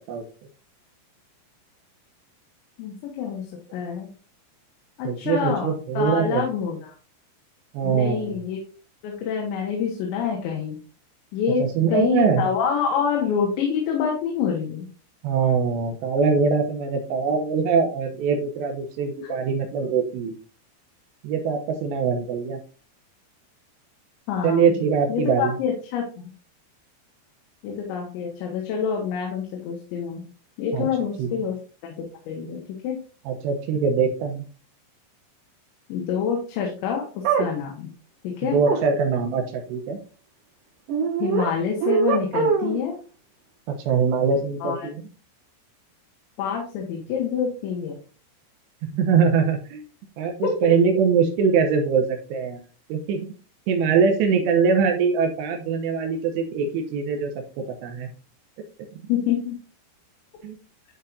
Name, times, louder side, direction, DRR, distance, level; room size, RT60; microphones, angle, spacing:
voice 1, 2.8-3.5 3.7-4.1 5.0-6.9 7.8-8.6 9.0-10.8 11.3-11.7 11.9-14.9 19.2-19.3 24.3-24.8 25.1-26.3 27.6-30.3 30.6-31.6 31.9-33.0 35.9-37.0 37.4-37.9 38.2-38.6 41.2-43.0 44.6-44.9 46.4-48.0 50.4-50.5 59.1-59.6, left 7 dB, 90° left, 0 dB, 3.5 m, -26 dB
voice 2, 5.0-6.4 7.7-8.4 11.6-12.5 15.2-20.4 21.2-22.6 24.4-25.6 30.7-30.9 31.2-31.3 33.3-34.5 38.4-40.0 43.7-45.0 48.8-49.8 50.2-52.6 52.9-53.3 53.7-57.3 57.8-58.1 60.4-60.6, right 5 dB, 80° right, 4 dB, 3.1 m, -22 dB
sound 1, 37.2-37.5 38.7-38.8 40.9-41.5 41.8-42.8, right 6 dB, 60° right, 2.8 m, -22 dB
11.0 x 4.5 x 2.5 m, 0.37 s
omnidirectional pair, 5.1 m